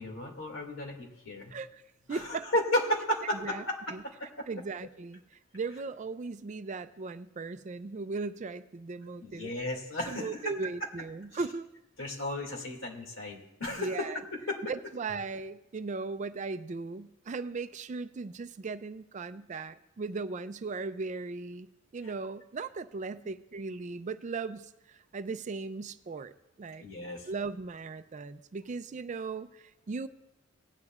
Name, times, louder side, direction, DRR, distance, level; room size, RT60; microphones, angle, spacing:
voice 1, 0.0-1.5 2.1-3.9 4.2-4.5 9.2-10.6 11.3-11.4 12.0-14.6 26.8-27.3, left 1 dB, 70° left, 0 dB, 2.3 m, -34 dB
voice 2, 1.5-1.8 2.1-2.5 3.4-4.0 4.5-5.2 5.5-9.5 10.1-11.7 13.8-14.2 14.7-21.7 21.9-26.3 26.6-26.8 27.3-30.1, right 4 dB, 35° right, 12 dB, 0.4 m, -37 dB
18.0 x 9.6 x 2.4 m, 0.94 s
head